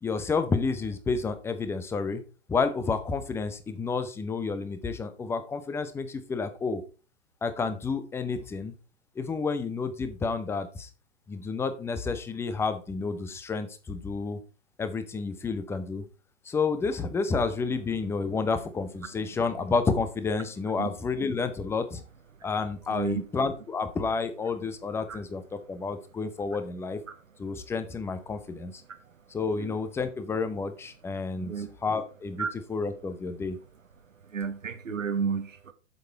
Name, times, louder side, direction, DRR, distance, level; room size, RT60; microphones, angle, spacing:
voice 1, 0.0-2.2 2.5-6.8 7.4-8.7 9.2-10.9 11.3-14.4 14.8-16.0 16.4-22.0 22.4-27.0 27.4-28.8 29.3-33.6, left 4 dB, 5° left, 11 dB, 0.6 m, -30 dB
voice 2, 22.9-23.2 25.1-25.2 29.6-29.7 31.4-31.7 32.4-32.5 34.3-35.7, right 6 dB, 85° right, 9 dB, 1.2 m, -31 dB
8.0 x 6.7 x 4.0 m, 0.33 s
figure-of-eight pair, 120°, 38 cm